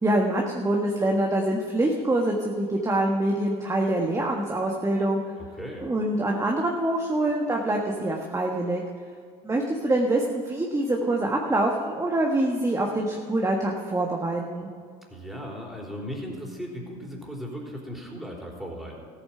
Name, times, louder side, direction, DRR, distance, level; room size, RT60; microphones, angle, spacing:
voice 1, 0.0-5.2 5.8-8.8 9.4-14.7, right 1 dB, 15° right, 0 dB, 1.5 m, -25 dB
voice 2, 5.4-5.9 15.1-19.1, equal, ahead, -2 dB, 3.8 m, -37 dB
14.5 x 8.6 x 5.8 m, 2.1 s
hypercardioid pair, 75°, 19 cm